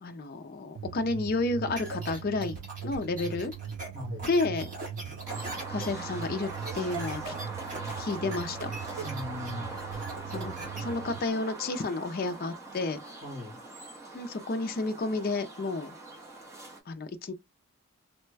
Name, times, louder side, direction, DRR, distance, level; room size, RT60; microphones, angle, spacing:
voice 1, 0.0-2.6 2.8-3.5 4.2-4.7 5.7-6.5 6.7-7.3 8.0-8.7 10.3-13.0 14.1-16.0 16.9-17.3, left 3 dB, 40° left, 0.4 m, -31 dB
sound 1, 0.7-11.2, right 8 dB, 85° right, 0.4 m, -40 dB
sound 2, 1.8-10.8, right 2 dB, 35° right, 1.6 m, -41 dB
voice 2, 3.9-4.3 9.0-9.8 13.2-13.6, left 2 dB, 60° right, 1.9 m, -39 dB
sound 3, 5.3-16.8, right 2 dB, 15° right, 0.7 m, -42 dB
3.2 x 2.1 x 3.2 m
head